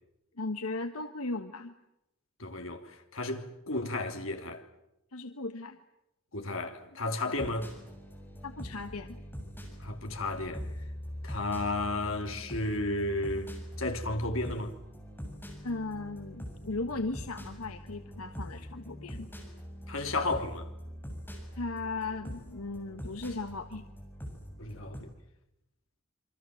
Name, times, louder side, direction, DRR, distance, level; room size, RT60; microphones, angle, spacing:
voice 1, 0.4-1.7 5.1-5.8 6.7-6.8 8.4-9.2 15.6-19.3 21.6-23.9, left 3 dB, 90° left, 1.4 m, -37 dB
voice 2, 2.4-4.6 6.3-7.7 9.8-10.7 11.2-13.5 13.8-14.7 19.9-20.7 24.6-25.1, left 2 dB, 65° left, 3.2 m, -33 dB
sound 1, 7.3-25.0, equal, 10° left, 7.4 m, -43 dB
27.5 x 25.0 x 7.7 m
head